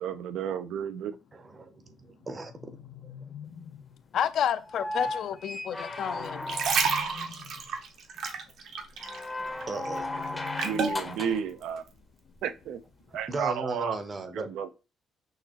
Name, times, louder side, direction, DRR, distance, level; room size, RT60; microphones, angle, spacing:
voice 1, 0.0-1.1 10.6-11.8 12.4-12.8 13.1-14.0 14.3-14.7, right 8 dB, 80° right, 0.5 m, -32 dB
voice 2, 1.3-3.2 7.0-7.2 9.4-10.1 13.3-14.5, right 3 dB, 20° right, 0.7 m, -37 dB
sound 1, 2.2-4.0 5.9-7.7 9.6-11.5, left 8 dB, 75° left, 1.4 m, -46 dB
voice 3, 4.1-6.4, left 9 dB, 55° left, 0.4 m, -30 dB
sound 2, 4.6-7.2 9.0-11.5 13.1-13.2, left 2 dB, 15° left, 0.6 m, -36 dB
sound 3, 6.3-9.3 9.6-11.0 11.6-11.8, right 5 dB, 55° right, 0.9 m, -30 dB
6.4 x 2.8 x 2.9 m
cardioid pair, 170°, 0 cm